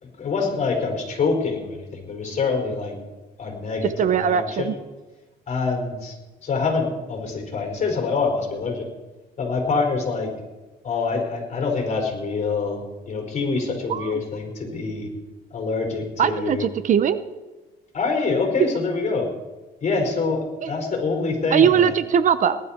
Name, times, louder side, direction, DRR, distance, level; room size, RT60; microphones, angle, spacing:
voice 1, 0.0-2.9 3.4-4.7 5.5-6.2 6.4-8.8 9.4-10.3 10.8-15.1 15.5-16.7 17.9-19.3 19.8-21.9, left 4 dB, 45° left, 2 dB, 5.0 m, -25 dB
voice 2, 4.0-4.7 13.9-14.2 16.2-17.2 20.6-20.7 21.5-22.6, right 8 dB, 50° right, 13 dB, 0.8 m, -20 dB
19.0 x 12.0 x 4.5 m, 1.2 s
cardioid pair, 110°, 17 cm